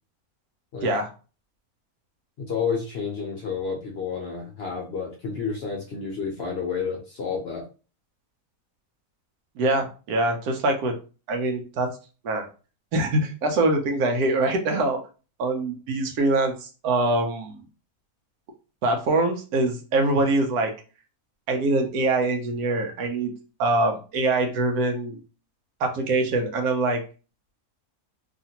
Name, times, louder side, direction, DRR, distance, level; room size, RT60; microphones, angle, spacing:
voice 1, 2.4-7.6, left 5 dB, 60° left, 0 dB, 0.6 m, -30 dB
voice 2, 9.6-10.9 11.3-11.9 12.2-12.5 12.9-15.0 15.4-17.6 18.8-20.7 21.5-23.3 23.6-25.2 25.8-27.0, right 2 dB, 85° right, 3 dB, 1.1 m, -24 dB
2.8 x 2.5 x 2.7 m, 0.34 s
omnidirectional pair, 1.6 m